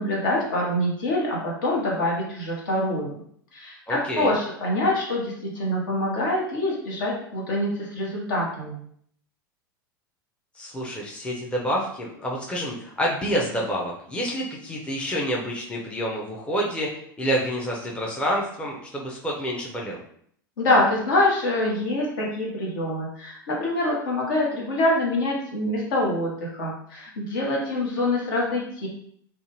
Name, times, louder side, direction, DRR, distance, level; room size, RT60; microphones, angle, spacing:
voice 1, 0.0-3.1 3.5-8.8 20.6-28.9, left 1 dB, 65° left, -3 dB, 1.1 m, -25 dB
voice 2, 3.9-4.3 10.6-16.9 17.2-20.0, equal, 10° left, -2 dB, 0.6 m, -28 dB
2.7 x 2.2 x 3.0 m, 0.64 s
figure-of-eight pair, 85°, 12 cm